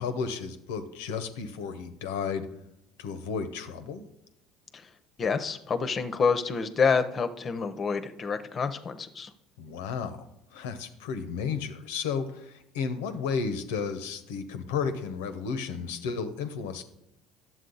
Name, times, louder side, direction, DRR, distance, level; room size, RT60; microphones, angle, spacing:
voice 1, 0.0-2.5 3.0-4.0 9.6-16.8, left 6 dB, 85° left, 9 dB, 0.7 m, -33 dB
voice 2, 5.2-9.3, left 5 dB, 40° left, 11 dB, 0.7 m, -27 dB
9.8 x 7.4 x 3.9 m, 0.82 s
hypercardioid pair, 75°, 0 cm